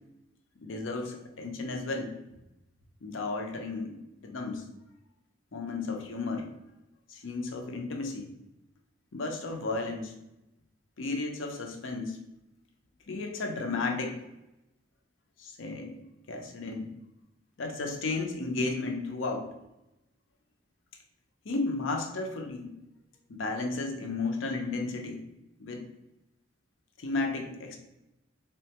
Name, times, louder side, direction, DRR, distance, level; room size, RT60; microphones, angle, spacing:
voice 1, 0.6-2.2 3.0-3.9 4.2-4.7 5.5-6.5 7.1-8.3 9.1-10.1 11.0-12.2 13.1-14.2 15.4-16.0 16.3-16.9 17.6-19.5 21.4-22.7 23.3-25.2 25.6-25.9 27.0-27.8, left 3 dB, 70° left, 3 dB, 0.6 m, -33 dB
3.6 x 2.2 x 2.8 m, 0.89 s
head